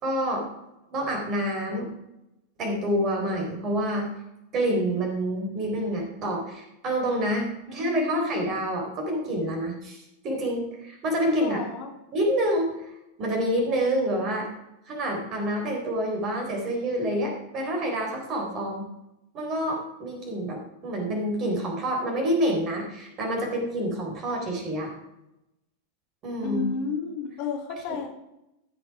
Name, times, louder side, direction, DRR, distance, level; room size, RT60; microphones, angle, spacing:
voice 1, 0.0-0.4 0.9-1.9 2.6-4.1 4.5-10.0 10.2-11.6 12.1-12.9 13.2-14.5 14.9-18.9 19.3-24.9 26.2-26.7 27.9-28.0, right 1 dB, 35° right, 1 dB, 4.0 m, -27 dB
voice 2, 7.8-8.5 11.4-11.9 26.4-28.1, left 5 dB, 45° left, 2 dB, 2.1 m, -32 dB
15.0 x 6.3 x 4.8 m, 0.89 s
figure-of-eight pair, 90°, 0 cm